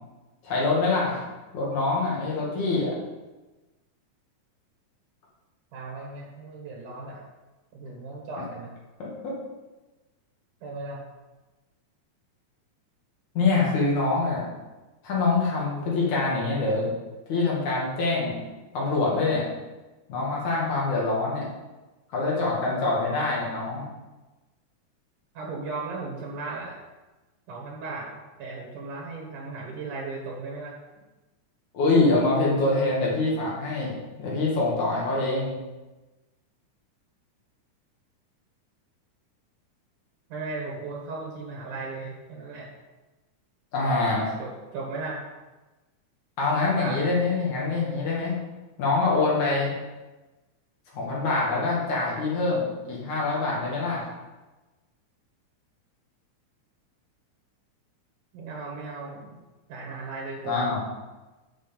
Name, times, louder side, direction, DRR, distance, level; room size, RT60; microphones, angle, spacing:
voice 1, 0.4-1.2 1.5-2.9 9.0-9.3 13.3-14.5 15.0-16.9 17.3-18.4 18.7-19.5 20.1-21.5 22.1-23.9 31.7-35.6 43.7-44.4 46.4-48.4 48.8-49.8 50.9-54.1 60.4-60.8, left 3 dB, 70° left, -5 dB, 3.4 m, -25 dB
voice 2, 5.7-7.2 7.7-8.7 10.6-11.0 25.3-26.8 27.5-28.1 28.4-30.7 40.3-42.7 44.4-45.2 46.4-47.0 58.3-59.4 59.7-60.8, right 3 dB, 85° right, -2 dB, 3.2 m, -36 dB
8.1 x 5.9 x 7.0 m, 1.1 s
omnidirectional pair, 3.5 m